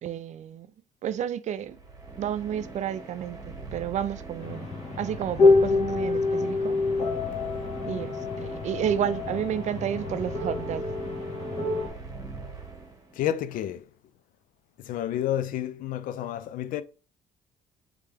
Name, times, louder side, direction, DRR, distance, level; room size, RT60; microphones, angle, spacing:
voice 1, 0.0-0.7 1.0-1.8 2.2-4.7 5.0-6.8 7.9-10.8, right 9 dB, 50° right, 0.4 m, -31 dB
sound 1, 1.6-13.3, right 3 dB, 25° right, 1.3 m, -42 dB
sound 2, 4.4-11.9, left 3 dB, 40° left, 1.7 m, -26 dB
voice 2, 13.1-13.9 14.8-16.8, left 11 dB, 65° left, 0.4 m, -30 dB
3.3 x 3.2 x 3.4 m
supercardioid pair, 65°, 15 cm